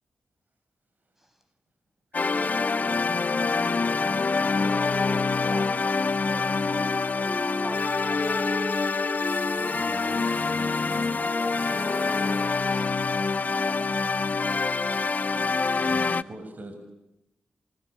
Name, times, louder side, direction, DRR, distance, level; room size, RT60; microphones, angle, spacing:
sound 1, 2.1-16.2, left 4 dB, 50° left, 1.0 m, -26 dB
Wind instrument woodwind instrument, 4.6-12.9, left 1 dB, 20° left, 1.5 m, -38 dB
voice 1, 5.4-6.9 11.2-12.1, right 1 dB, 25° right, 5 dB, 7.1 m, -43 dB
voice 2, 7.4-8.5 8.9-9.0 12.7-12.9 13.4-14.7, equal, 10° right, 8 dB, 7.8 m, -45 dB
sound 2, 9.2-14.2, right 8 dB, 80° right, 1.1 m, -48 dB
voice 3, 9.7-11.2 15.8-16.7, right 1 dB, 50° right, 7 dB, 6.9 m, -41 dB
28.0 x 25.0 x 8.5 m, 0.87 s
supercardioid pair, 45°, 4 cm